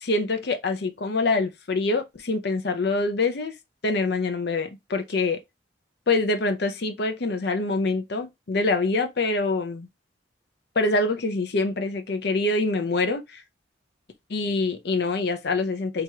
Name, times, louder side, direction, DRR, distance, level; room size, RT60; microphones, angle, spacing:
voice 1, 0.0-3.5 3.8-5.4 6.1-9.9 10.8-13.4 14.3-16.0, left 3 dB, 55° left, 0.6 m, -25 dB
3.5 x 2.9 x 2.8 m
head